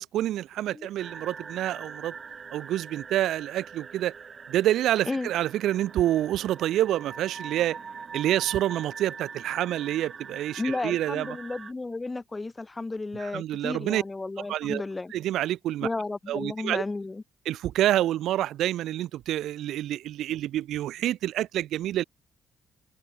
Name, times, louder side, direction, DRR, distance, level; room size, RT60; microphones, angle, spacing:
voice 1, 0.0-2.1 2.5-4.1 4.5-7.8 8.1-11.3 13.1-14.0 14.5-14.8 15.1-15.9 16.3-16.8 17.5-22.0, right 13 dB, 80° right, 0.6 m, -27 dB
sound 1, 1.0-11.7, right 5 dB, 40° right, 4.3 m, -42 dB
voice 2, 10.6-15.1 15.8-17.2, left 3 dB, 20° left, 0.7 m, -33 dB
cardioid pair, 90°, 0 cm